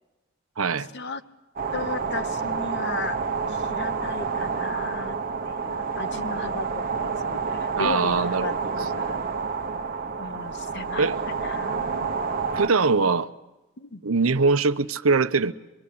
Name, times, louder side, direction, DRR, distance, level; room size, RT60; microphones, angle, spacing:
voice 1, 0.6-0.9 7.8-8.6 11.0-11.2 12.5-13.3 14.0-15.5, right 4 dB, 80° right, 0.8 m, -22 dB
sound 1, 1.6-12.7, right 5 dB, 45° right, 1.0 m, -29 dB
voice 2, 1.7-3.2 3.4-5.2 5.5-9.2 10.2-12.2 13.8-14.0, left 4 dB, 55° left, 1.1 m, -35 dB
24.5 x 22.5 x 8.6 m
head